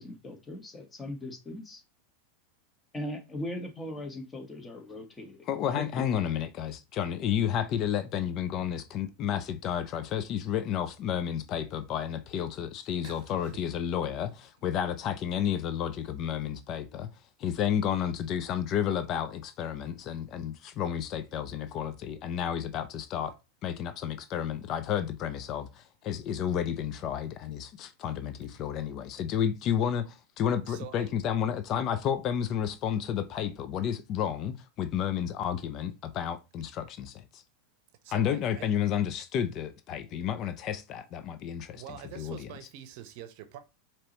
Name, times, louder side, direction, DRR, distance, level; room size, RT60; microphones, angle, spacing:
voice 1, 0.0-1.8 2.9-5.8, left 1 dB, 20° left, 1.4 m, -39 dB
voice 2, 5.5-17.1 17.4-23.3 23.6-37.4 38.1-42.5, left 9 dB, 45° left, 0.5 m, -31 dB
voice 3, 13.0-13.6 28.5-28.7 30.6-31.1 38.0-38.7 41.7-43.6, right 10 dB, 60° right, 0.7 m, -45 dB
4.5 x 3.0 x 3.0 m
hypercardioid pair, 100°, 0 cm